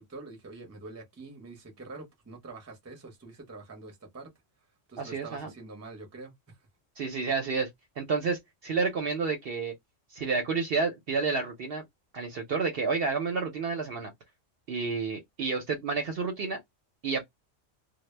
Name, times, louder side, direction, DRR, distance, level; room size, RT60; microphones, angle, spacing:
voice 1, 0.0-4.3 4.9-6.6, right 3 dB, 20° right, 0.5 m, -45 dB
voice 2, 5.0-5.5 7.0-7.7 8.0-9.7 10.1-11.8 12.1-14.1 14.7-16.6 17.0-17.2, right 4 dB, 60° right, 0.7 m, -30 dB
2.1 x 2.0 x 3.1 m
omnidirectional pair, 1.3 m